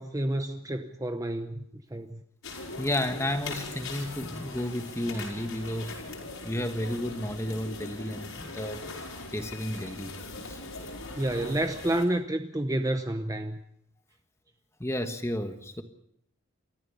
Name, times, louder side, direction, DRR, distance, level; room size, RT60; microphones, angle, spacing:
voice 1, 0.0-2.2 11.2-13.6, right 1 dB, 15° right, 7 dB, 0.8 m, -30 dB
sound 1, 2.4-12.1, left 3 dB, 75° left, 5.6 m, -40 dB
voice 2, 2.8-6.0 6.4-8.8 9.3-10.1 10.5-10.6 14.8-15.8, left 1 dB, 15° left, 7 dB, 1.4 m, -32 dB
29.5 x 14.0 x 7.0 m, 0.74 s
head